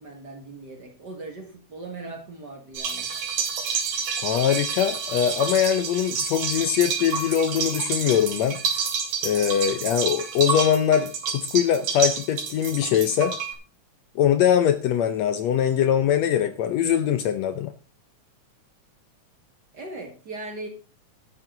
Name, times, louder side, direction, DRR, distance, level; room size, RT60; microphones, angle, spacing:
voice 1, 0.0-3.2 19.7-20.7, right 2 dB, 40° right, 4 dB, 1.9 m, -39 dB
sound 1, 2.7-13.5, right 5 dB, 75° right, 3.8 m, -29 dB
voice 2, 4.2-8.6 9.2-13.3 14.2-17.7, left 9 dB, 70° left, 10 dB, 1.8 m, -22 dB
12.0 x 10.5 x 3.9 m, 0.34 s
omnidirectional pair, 3.6 m